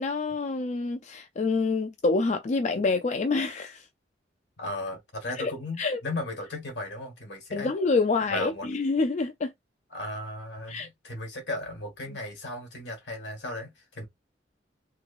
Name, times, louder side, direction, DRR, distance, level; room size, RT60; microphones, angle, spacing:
voice 1, 0.0-3.9 5.4-5.5 5.8-6.0 7.5-9.5 10.7-10.9, left 3 dB, 40° left, 0.4 m, -27 dB
voice 2, 4.6-7.7 8.3-8.7 9.9-14.0, left 1 dB, 70° left, 1.6 m, -36 dB
3.4 x 3.0 x 2.4 m
head